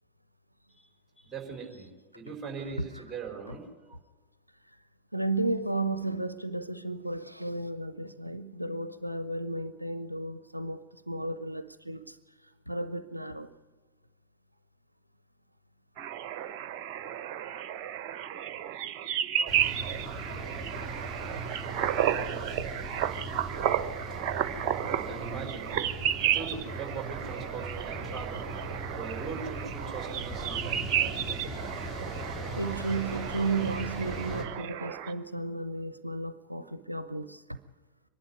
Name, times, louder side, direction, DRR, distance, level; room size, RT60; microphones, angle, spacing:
voice 1, 1.2-3.6 24.9-28.5 29.0-31.0, right 5 dB, 10° right, 4.5 m, -41 dB
voice 2, 2.6-3.0 3.5-3.6 5.1-12.2 12.7-13.5 32.5-37.6, right 2 dB, 90° right, 0.6 m, -33 dB
sound 1, 16.0-35.1, right 10 dB, 40° right, 1.1 m, -33 dB
sound 2, 19.5-34.4, right 1 dB, 15° left, 3.6 m, -39 dB
24.5 x 11.5 x 9.6 m
figure-of-eight pair, 90°, 0 cm